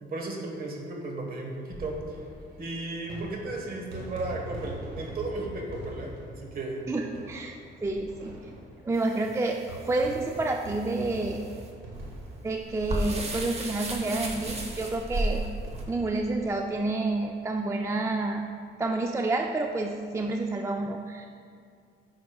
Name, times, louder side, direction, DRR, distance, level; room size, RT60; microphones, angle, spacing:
voice 1, 0.0-2.2 2.6-6.8, right 2 dB, 45° right, 1 dB, 1.4 m, -35 dB
sound 1, 1.6-17.6 17.9-18.0 18.2-18.3 19.6-19.8, right 1 dB, 85° right, 1.7 m, -44 dB
voice 2, 6.9-7.6 7.8-8.4 8.8-11.5 12.4-15.4 15.9-18.5 18.8-21.3, right 2 dB, 15° right, 2 dB, 0.4 m, -29 dB
sound 2, 8.9-15.8, right 1 dB, 30° right, 1.0 m, -35 dB
10.0 x 6.0 x 2.3 m, 2.3 s
cardioid pair, 90°, 20 cm